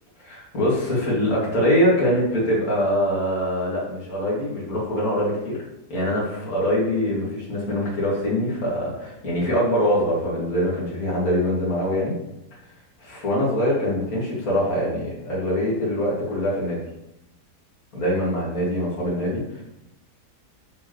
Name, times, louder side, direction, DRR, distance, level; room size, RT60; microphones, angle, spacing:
voice 1, 0.2-5.6 5.9-12.1 12.5-12.6 13.0-16.8 17.9-19.6, equal, 60° left, -6 dB, 3.1 m, -23 dB
12.5 x 4.6 x 3.3 m, 0.86 s
omnidirectional pair, 1.7 m